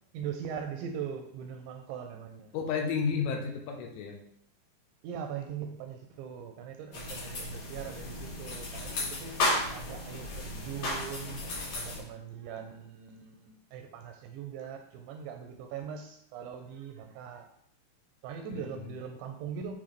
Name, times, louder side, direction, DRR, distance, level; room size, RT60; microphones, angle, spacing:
voice 1, 0.1-2.5 5.0-9.3 9.7-11.4 11.7-17.5 18.2-19.7, right 7 dB, 85° right, 4 dB, 2.6 m, -41 dB
voice 2, 2.5-4.2 18.5-18.9, left 6 dB, 85° left, 2 dB, 3.5 m, -32 dB
sound 1, 6.9-12.0, left 1 dB, 50° left, 2.3 m, -34 dB
9.6 x 4.0 x 3.1 m, 0.70 s
omnidirectional pair, 5.5 m